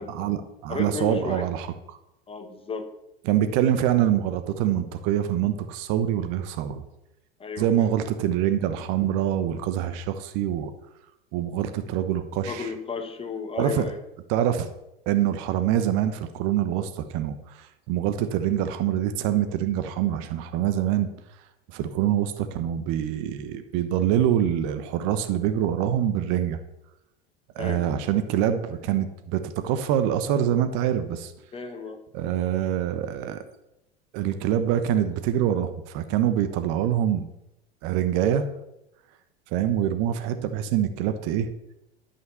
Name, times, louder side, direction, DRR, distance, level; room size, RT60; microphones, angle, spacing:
voice 1, 0.0-2.0 3.2-6.8 7.6-10.7 11.3-12.7 13.6-13.9 14.3-14.7 15.1-21.1 21.7-26.6 27.5-31.3 32.1-33.4 34.1-37.3 37.8-38.5 39.5-41.5, right 10 dB, 50° right, 10 dB, 1.2 m, -25 dB
voice 2, 0.7-1.5 2.3-2.9 7.4-7.9 12.5-14.0 27.6-27.9 31.5-32.0, left 4 dB, 20° left, 7 dB, 1.5 m, -33 dB
13.0 x 5.8 x 7.0 m, 0.88 s
figure-of-eight pair, 90°, 30 cm